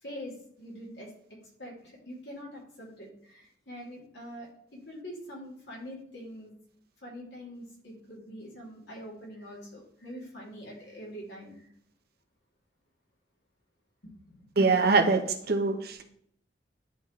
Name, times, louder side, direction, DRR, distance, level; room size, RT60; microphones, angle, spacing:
voice 1, 0.0-1.1 1.6-6.5 7.0-11.7 14.0-14.4, equal, 70° left, -3 dB, 2.6 m, -44 dB
voice 2, 14.6-16.0, right 4 dB, 60° right, 6 dB, 0.8 m, -24 dB
10.5 x 4.1 x 3.1 m, 0.65 s
head